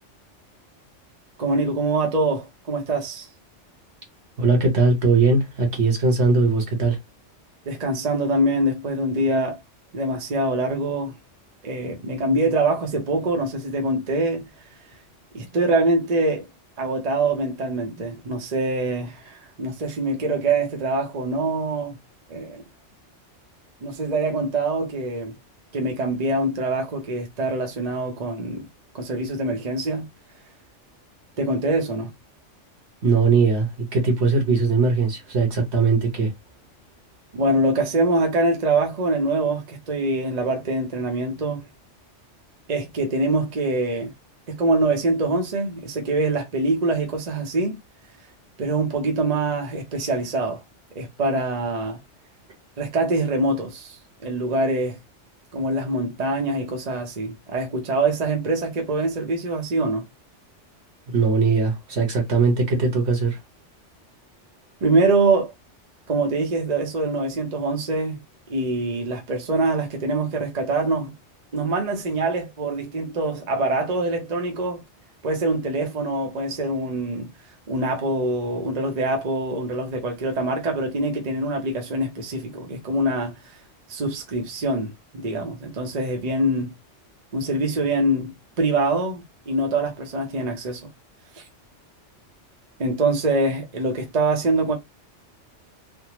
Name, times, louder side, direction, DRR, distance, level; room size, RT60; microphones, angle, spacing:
voice 1, 1.4-3.3 7.7-9.6 9.9-11.2 11.6-14.5 15.3-16.5 16.8-22.0 22.3-22.6 23.8-25.3 25.7-28.7 28.9-30.1 31.4-32.1 37.3-41.7 42.7-44.1 44.5-47.8 48.6-50.6 50.9-52.0 52.8-55.0 55.5-60.0 64.8-65.5 66.1-68.2 68.5-71.1 71.5-74.8 75.2-77.3 77.7-83.6 83.9-86.7 87.3-90.9 91.3-91.4 92.8-94.7, right 2 dB, 40° right, 0.8 m, -24 dB
voice 2, 4.4-7.0 33.0-36.3 61.1-63.4, right 4 dB, 65° right, 1.4 m, -20 dB
3.5 x 2.1 x 2.9 m
omnidirectional pair, 1.2 m